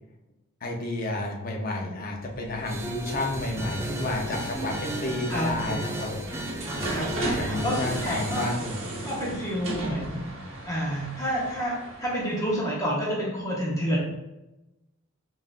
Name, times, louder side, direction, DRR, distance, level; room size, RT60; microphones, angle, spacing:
voice 1, 0.6-8.7, left 2 dB, 40° left, 0 dB, 0.7 m, -31 dB
sound 1, 2.2-12.9, right 1 dB, 65° right, 0.9 m, -37 dB
sound 2, 2.6-8.6, right 1 dB, 15° right, 0.3 m, -35 dB
voice 2, 5.3-5.9 6.9-8.5 9.0-10.2 10.7-14.0, equal, 15° left, -5 dB, 0.9 m, -29 dB
5.5 x 2.5 x 2.4 m, 0.95 s
head